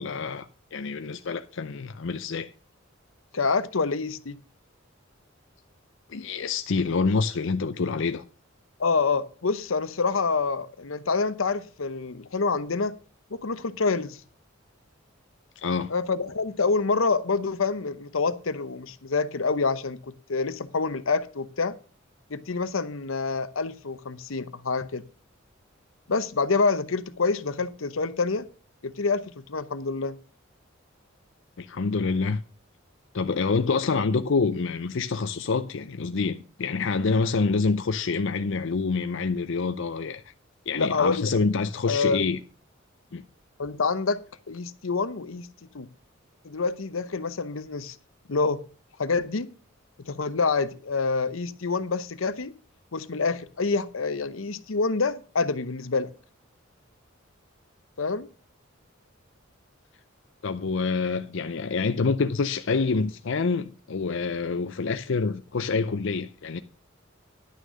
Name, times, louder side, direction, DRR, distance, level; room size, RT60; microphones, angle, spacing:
voice 1, 0.0-2.5 6.1-8.2 15.6-15.9 31.6-32.4 33.1-40.2 40.7-42.4 43.1-43.2 60.4-66.6, left 4 dB, 65° left, 0.6 m, -27 dB
voice 2, 3.3-4.4 8.8-13.0 13.3-14.2 15.9-21.7 22.3-25.0 26.1-28.5 28.8-30.2 40.7-41.3 41.8-42.3 43.6-44.2 44.5-45.5 45.7-45.9 46.4-48.0 48.3-48.6 49.0-49.5 50.0-52.5 52.9-56.1 58.0-58.3, left 4 dB, 90° left, 0.9 m, -27 dB
11.0 x 6.5 x 6.2 m
head